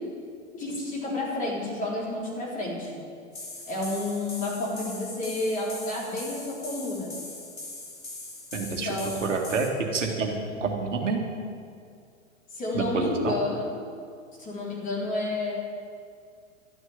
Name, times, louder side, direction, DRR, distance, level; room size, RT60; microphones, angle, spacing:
voice 1, 0.5-2.9 3.7-7.1 8.6-9.3 10.5-10.6 12.5-13.9 14.4-15.5, left 2 dB, 20° left, -5 dB, 3.9 m, -30 dB
sound 1, 3.3-9.7, left 2 dB, 80° left, 2.8 m, -41 dB
voice 2, 8.5-9.0 9.2-9.7 9.9-11.2 12.7-13.4, right 4 dB, 65° right, 1 dB, 2.0 m, -28 dB
12.0 x 7.9 x 9.4 m, 2.3 s
figure-of-eight pair, 105°, 40 cm